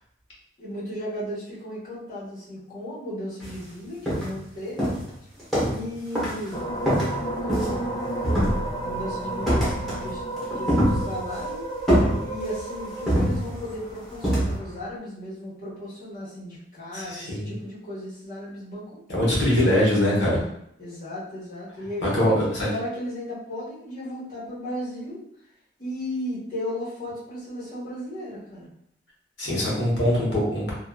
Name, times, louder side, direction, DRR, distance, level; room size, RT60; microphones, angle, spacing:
voice 1, 0.6-5.0 5.6-6.6 7.4-10.2 10.5-11.6 12.2-19.7 20.8-22.3 22.7-25.2 25.8-28.7, equal, 45° left, -9 dB, 1.4 m, -35 dB
sound 1, 3.4-3.6 4.1-4.5 4.8-5.9 6.2-6.5 6.9-7.9 8.2-9.0 9.5-10.1 10.4-11.4 11.9-12.6 13.1-13.8 14.2-14.6, equal, ahead, 0.9 m, -24 dB
sound 2, 6.5-15.0, right 1 dB, 25° left, 0.3 m, -33 dB
voice 2, 16.9-17.5 19.1-20.4 22.0-22.7 29.4-30.7, left 1 dB, 75° left, -5 dB, 1.1 m, -22 dB
2.8 x 2.4 x 2.3 m, 0.75 s
head